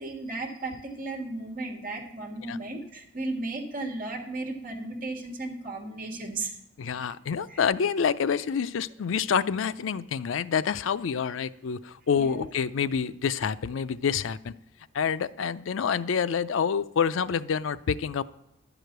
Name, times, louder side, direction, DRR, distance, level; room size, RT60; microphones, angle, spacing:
voice 1, 0.0-6.5 7.5-7.6 12.2-12.4, right 2 dB, 45° right, 2 dB, 1.8 m, -35 dB
voice 2, 6.8-14.5 14.9-18.2, left 7 dB, 80° left, 15 dB, 0.4 m, -27 dB
10.5 x 5.0 x 7.8 m, 0.85 s
head